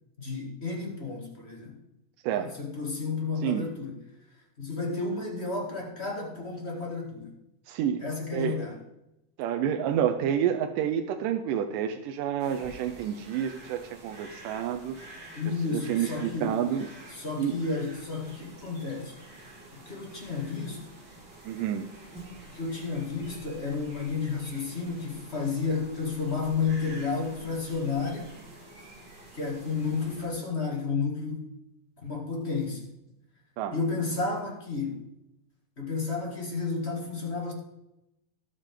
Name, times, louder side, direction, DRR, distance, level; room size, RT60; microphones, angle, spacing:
voice 1, 0.2-1.8 2.3-4.0 4.6-7.4 8.0-8.8 15.4-16.6 17.1-19.1 19.7-20.8 22.5-28.3 29.3-31.5 32.0-32.8 33.7-35.0 35.8-37.5, left 4 dB, 25° left, -1 dB, 1.6 m, -32 dB
voice 2, 7.7-8.0 8.3-8.6 9.4-15.0 15.5-16.9 17.4-17.6 21.5-21.9 33.6-33.8, right 9 dB, 80° right, 6 dB, 2.2 m, -29 dB
sound 1, 12.4-30.3, right 2 dB, 35° right, 2.9 m, -48 dB
19.5 x 6.7 x 3.8 m, 0.90 s
omnidirectional pair, 3.9 m